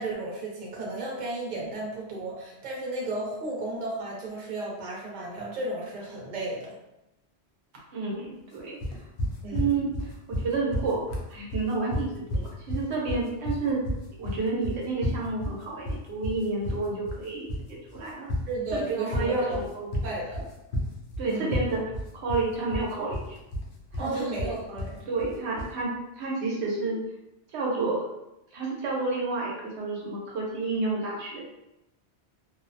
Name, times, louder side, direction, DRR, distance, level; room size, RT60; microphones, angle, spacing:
voice 1, 0.0-6.7 9.4-9.7 18.5-19.6 20.0-20.5 21.3-21.6 24.0-25.0, right 2 dB, 50° right, -3 dB, 0.8 m, -33 dB
voice 2, 7.9-8.8 9.5-13.8 14.2-18.3 18.7-19.9 21.2-21.8 22.2-23.4 23.9-24.5 25.1-25.9 26.2-27.0 27.5-28.0 28.5-31.4, right 3 dB, 80° right, -2 dB, 0.9 m, -30 dB
sound 1, 8.8-25.8, left 1 dB, 60° left, 0.7 m, -32 dB
2.5 x 2.0 x 2.5 m, 0.92 s
omnidirectional pair, 1.1 m